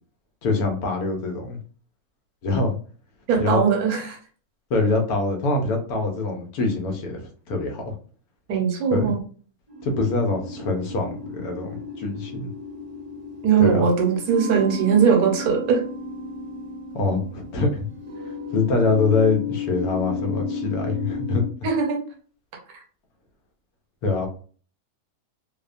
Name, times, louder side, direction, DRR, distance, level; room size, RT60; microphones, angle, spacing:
voice 1, 0.4-1.6 2.4-2.8 3.4-3.6 4.7-7.9 8.9-9.1 9.8-12.5 13.6-13.9 16.9-17.9 18.2-21.4 24.0-24.3, left 3 dB, 80° left, 3 dB, 1.2 m, -24 dB
voice 2, 3.3-4.2 8.5-9.2 13.4-15.8 21.6-22.0, right 6 dB, 75° right, 2 dB, 1.2 m, -20 dB
sound 1, 9.7-21.5, left 4 dB, 30° right, 0.6 m, -33 dB
2.8 x 2.1 x 2.4 m, 0.42 s
omnidirectional pair, 1.6 m